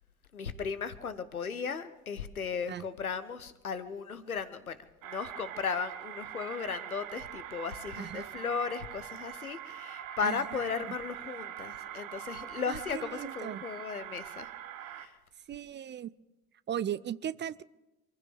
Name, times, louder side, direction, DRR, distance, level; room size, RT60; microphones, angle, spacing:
voice 1, 0.3-14.5 14.8-15.1, left 6 dB, 85° left, 13 dB, 0.8 m, -36 dB
sound 1, 5.0-15.1, right 11 dB, 70° right, 1.0 m, -43 dB
voice 2, 8.0-8.3 10.2-10.9 12.7-13.6 15.5-16.1 16.7-17.6, right 10 dB, 25° right, 18 dB, 0.5 m, -37 dB
26.5 x 15.0 x 3.4 m, 1.0 s
figure-of-eight pair, 50°, 42 cm